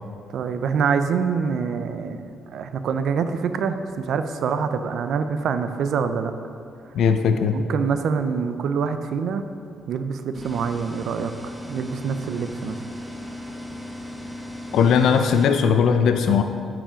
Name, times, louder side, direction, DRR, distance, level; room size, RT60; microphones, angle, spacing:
voice 1, 0.3-6.3 7.5-9.4 9.9-12.8, right 6 dB, 70° right, 9 dB, 0.5 m, -25 dB
voice 2, 6.9-7.6 14.7-16.4, left 6 dB, 75° left, 7 dB, 0.4 m, -18 dB
sound 1, 10.3-15.5, left 1 dB, 10° right, 0.8 m, -36 dB
8.9 x 4.9 x 5.0 m, 2.5 s
cardioid pair, 90°, 0 cm